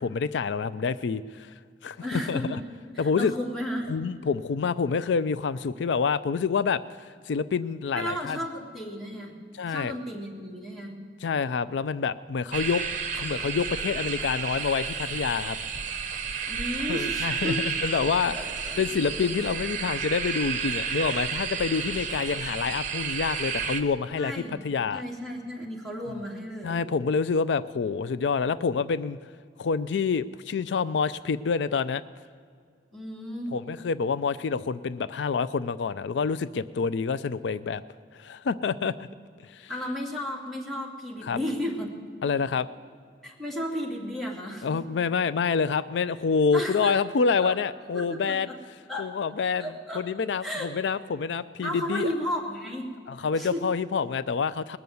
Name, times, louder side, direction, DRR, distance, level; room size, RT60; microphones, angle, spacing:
voice 1, 0.0-1.5 1.8-2.6 3.0-3.3 3.9-8.4 9.5-10.0 11.2-12.8 13.1-15.6 16.9-18.4 18.8-25.0 26.6-29.2 29.6-32.0 33.5-37.8 38.1-38.9 39.4-39.7 41.2-41.4 42.2-42.7 44.6-48.5 49.0-49.7 49.9-52.1 53.1-54.8, left 5 dB, 80° left, 15 dB, 0.4 m, -27 dB
voice 2, 2.0-2.6 2.9-3.9 7.9-9.3 9.7-10.9 16.5-17.6 17.9-18.1 18.3-18.8 24.2-24.6 24.9-26.8 32.9-33.6 39.7-41.9 43.2-44.8 46.5-47.0 47.4-47.5 47.9-48.6 48.9-49.1 49.6-50.1 50.4-50.8 51.6-52.9 53.3-53.6, equal, ahead, -3 dB, 2.6 m, -34 dB
sound 1, 12.5-23.8, right 6 dB, 45° right, 1.0 m, -31 dB
20.0 x 6.9 x 9.3 m, 2.1 s
head